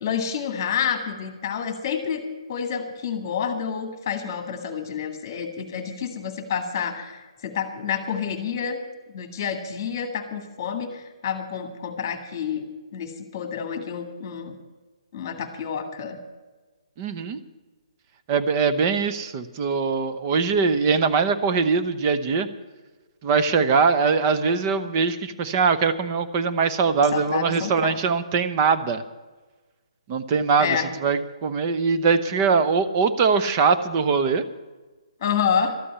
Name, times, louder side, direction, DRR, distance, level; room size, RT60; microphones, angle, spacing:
voice 1, 0.0-8.8 9.1-12.7 12.9-14.5 15.1-16.2 27.1-28.0 30.6-30.9 35.2-35.8, left 7 dB, 25° left, 7 dB, 1.8 m, -28 dB
voice 2, 17.0-17.4 18.3-22.5 23.2-29.0 30.1-34.4, right 5 dB, 20° right, 11 dB, 0.7 m, -22 dB
13.0 x 8.4 x 9.8 m, 1.3 s
hypercardioid pair, 170°, 3 cm